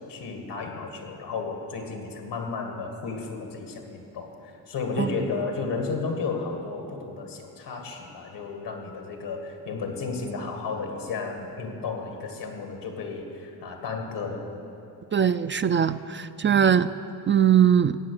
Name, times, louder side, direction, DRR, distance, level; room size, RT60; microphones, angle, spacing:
voice 1, 0.1-14.5, left 4 dB, 85° left, 3 dB, 1.9 m, -33 dB
voice 2, 15.1-16.9 17.3-18.0, right 8 dB, 30° right, 12 dB, 0.3 m, -21 dB
15.5 x 8.4 x 6.5 m, 2.8 s
cardioid pair, 65°, 40 cm